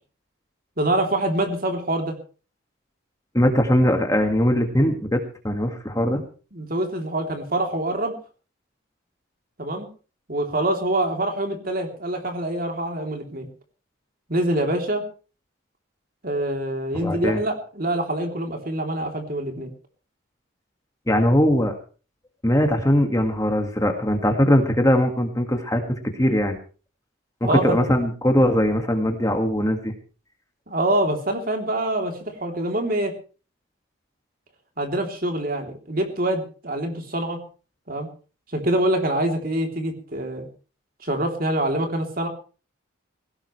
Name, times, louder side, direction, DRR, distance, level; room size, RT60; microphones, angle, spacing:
voice 1, 0.8-2.2 6.5-8.1 9.6-9.9 10.3-13.5 14.3-15.0 16.2-19.7 27.4-27.8 30.7-32.1 32.4-33.1 34.8-37.4 37.9-38.1 38.5-40.5 41.0-42.3, right 1 dB, 45° right, 3 dB, 3.3 m, -25 dB
voice 2, 3.3-6.2 16.9-17.4 21.1-21.7 22.4-25.8 26.1-26.6 27.4-29.9, equal, 15° left, 4 dB, 1.9 m, -20 dB
20.0 x 17.0 x 3.3 m, 0.37 s
head